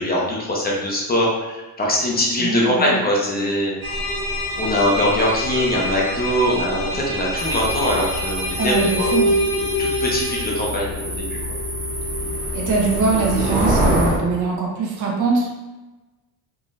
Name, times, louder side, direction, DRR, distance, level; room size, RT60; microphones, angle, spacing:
voice 1, 0.0-3.7 4.6-9.1 9.8-11.2, left 1 dB, 25° left, -3 dB, 0.7 m, -22 dB
voice 2, 2.4-3.0 8.6-9.3 12.5-15.6, right 4 dB, 55° right, -1 dB, 0.8 m, -22 dB
sound 1, 3.8-10.4, equal, 70° right, 1.2 m, -28 dB
sound 2, 7.4-14.2, equal, 20° right, 0.9 m, -25 dB
sound 3, 7.5-13.1, left 1 dB, 80° left, 1.3 m, -27 dB
3.8 x 3.0 x 2.5 m, 1.1 s
cardioid pair, 145°, 37 cm